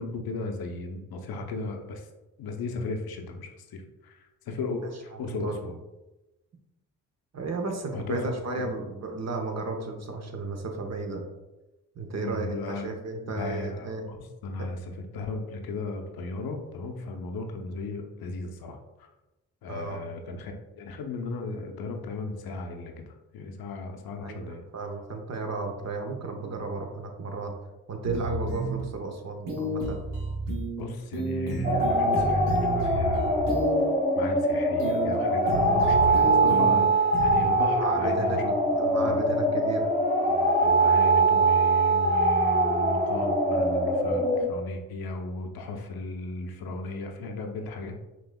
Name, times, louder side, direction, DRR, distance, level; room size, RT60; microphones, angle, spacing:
voice 1, 0.0-2.1 2.4-5.7 7.9-8.7 12.2-12.9 13.3-19.1 19.6-24.6 30.7-33.5 34.1-39.2 40.2-48.0, left 3 dB, 55° left, 4 dB, 0.7 m, -36 dB
voice 2, 5.3-5.6 7.3-11.2 11.9-14.0 14.6-14.7 19.7-20.0 24.2-27.6 27.9-30.0 35.7-36.4 37.7-38.4 38.7-39.9, right 3 dB, 40° right, 4 dB, 0.8 m, -34 dB
sound 1, 28.0-28.8 29.5-30.8 31.1-33.8 34.8-35.1 35.5-36.8 37.1-37.5, right 1 dB, 80° right, 0.9 m, -31 dB
sound 2, 31.6-44.4, right 2 dB, 20° right, 1.4 m, -23 dB
5.8 x 2.7 x 2.2 m, 1.0 s
hypercardioid pair, 40°, 43 cm